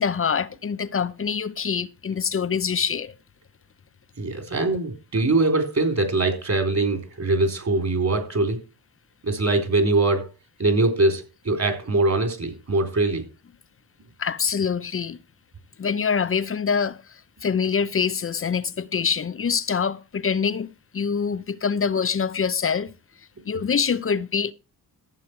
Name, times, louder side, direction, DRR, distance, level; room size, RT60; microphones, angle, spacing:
voice 1, 0.0-3.1 14.2-15.2 15.8-17.0 17.4-20.7 20.9-22.9 23.4-24.5, left 6 dB, 35° left, 0.8 m, -25 dB
voice 2, 4.2-8.6 9.2-10.2 10.6-13.2, right 2 dB, 45° right, 4.3 m, -22 dB
14.5 x 7.8 x 4.7 m
cardioid pair, 85°, 37 cm